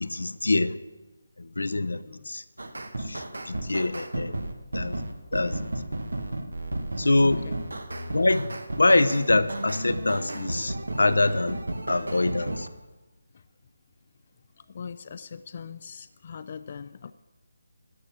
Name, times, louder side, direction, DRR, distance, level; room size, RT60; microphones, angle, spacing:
voice 1, 0.0-0.8 1.4-2.4 3.0-4.4 4.7-5.0 5.3-5.6 7.0-7.4 8.1-8.5 8.8-11.6 11.9-12.7, left 2 dB, 85° left, 0.7 m, -24 dB
sound 1, 2.6-12.7, right 1 dB, 90° right, 1.3 m, -33 dB
voice 2, 7.2-7.6 13.3-13.4 14.6-17.1, left 6 dB, 40° left, 0.4 m, -41 dB
13.0 x 8.3 x 6.1 m
figure-of-eight pair, 160°, 0 cm